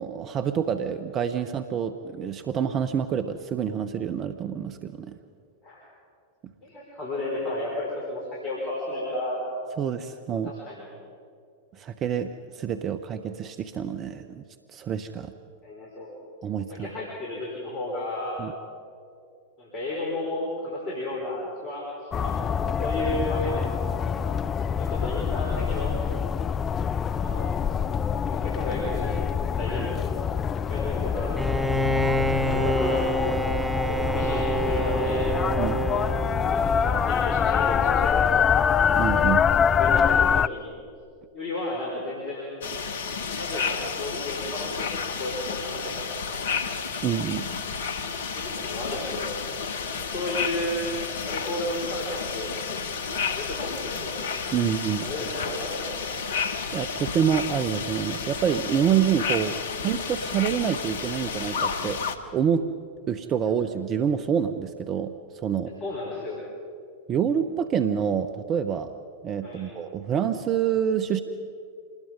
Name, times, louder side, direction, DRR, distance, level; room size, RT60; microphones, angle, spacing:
voice 1, 0.0-5.1 9.8-10.5 11.7-14.4 14.7-15.3 16.4-16.9 18.4-18.5 29.8-29.9 35.6-35.9 39.0-39.5 47.0-47.5 54.5-55.1 56.2-56.4 56.7-59.5 59.8-62.0 62.3-62.7 63.1-65.7 67.1-68.9 69.2-71.2, right 8 dB, 30° right, 9 dB, 0.8 m, -27 dB
voice 2, 6.6-9.4 10.4-10.9 15.6-16.1 16.7-18.4 19.6-23.8 24.2-24.3 24.8-25.9 27.1-27.5 28.2-29.3 29.6-30.3 30.7-31.7 32.5-33.2 33.7-35.3 36.3-38.2 39.7-40.7 41.3-42.5 43.4-46.0 48.3-49.3 49.9-50.9 51.3-52.6 53.3-54.2 55.0-56.1 59.4-59.6 65.8-66.4 69.4-69.7, left 1 dB, 40° left, -4 dB, 5.4 m, -33 dB
sound 1, 22.1-40.5, left 7 dB, 25° left, 0.5 m, -25 dB
Bowed string instrument, 31.4-36.9, right 1 dB, 5° right, 1.1 m, -27 dB
sound 2, 42.6-62.2, left 5 dB, 65° left, 1.3 m, -31 dB
26.5 x 20.5 x 5.4 m, 2.4 s
figure-of-eight pair, 95°, 0 cm